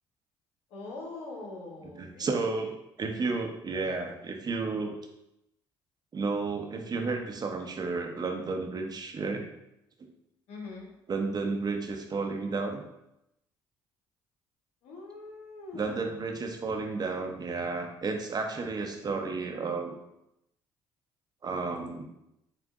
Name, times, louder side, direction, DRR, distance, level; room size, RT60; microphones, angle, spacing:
voice 1, 0.7-2.4 10.5-10.9 14.8-16.2, left 3 dB, 75° left, -1 dB, 1.2 m, -43 dB
voice 2, 1.8-2.7 3.0-5.0 6.1-9.4 10.0-10.1 11.1-12.8 15.7-20.0 21.4-22.0, right 4 dB, 40° right, 4 dB, 0.7 m, -32 dB
7.4 x 2.5 x 2.4 m, 0.85 s
supercardioid pair, 65°, 11 cm